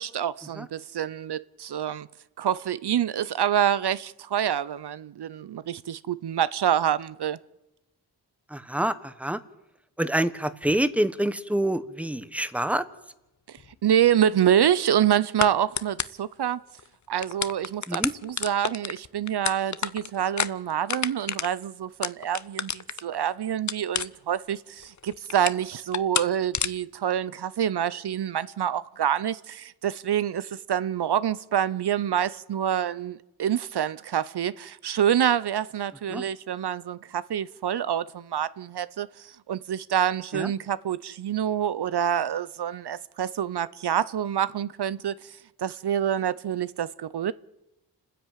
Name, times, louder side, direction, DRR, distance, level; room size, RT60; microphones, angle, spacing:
voice 1, 0.0-2.1 2.4-7.4 13.5-16.6 17.1-47.3, right 9 dB, 75° right, 0.7 m, -27 dB
voice 2, 8.5-9.4 10.0-12.8 17.9-18.1 36.1-36.2 40.3-40.5, right 1 dB, 5° right, 1.1 m, -26 dB
sound 1, 13.6-13.7 15.4-15.5 15.8-16.3 16.8-16.9 17.1-23.2 23.7-24.5 24.8-25.6 25.9-26.3 26.5-26.7, left 7 dB, 45° left, 0.7 m, -29 dB
29.5 x 10.5 x 9.1 m
wide cardioid pair, 90°, 40 cm